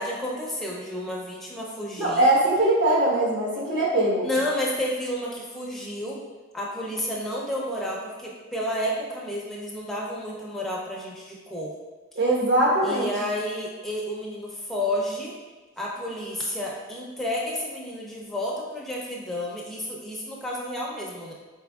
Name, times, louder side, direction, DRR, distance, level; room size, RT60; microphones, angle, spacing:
voice 1, 0.0-2.3 4.2-6.2 6.5-11.7 12.8-15.4 15.8-21.3, left 1 dB, ahead, -4 dB, 0.5 m, -31 dB
voice 2, 2.0-4.3 12.2-13.1, right 1 dB, 55° right, -6 dB, 1.1 m, -21 dB
4.4 x 3.5 x 2.3 m, 1.3 s
head